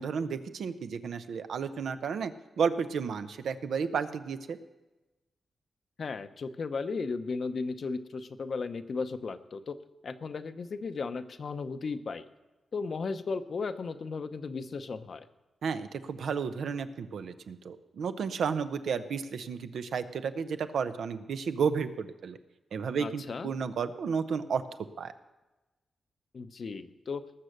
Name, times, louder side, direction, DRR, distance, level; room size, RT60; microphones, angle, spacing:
voice 1, 0.0-2.3 2.6-4.6 15.6-22.4 22.7-24.6 25.0-25.1, right 6 dB, 80° right, 10 dB, 0.7 m, -32 dB
voice 2, 6.0-9.8 10.0-12.2 12.7-15.3 23.0-23.5 26.3-27.2, left 4 dB, 55° left, 10 dB, 0.7 m, -35 dB
19.0 x 6.7 x 6.5 m, 1.1 s
wide cardioid pair, 105°, 0 cm